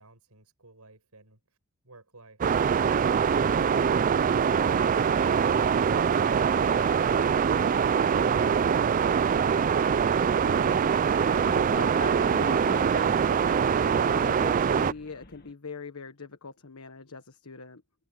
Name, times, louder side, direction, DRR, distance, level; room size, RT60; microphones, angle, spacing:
voice 1, 0.0-1.4 1.8-9.8, right 2 dB, 90° right, 7.3 m, -55 dB
sound 1, 2.4-14.9, right 7 dB, 35° right, 0.3 m, -23 dB
sound 2, 4.7-15.5, left 5 dB, 45° left, 1.7 m, -52 dB
voice 2, 10.4-10.9 11.4-17.8, left 4 dB, 80° left, 1.4 m, -41 dB
head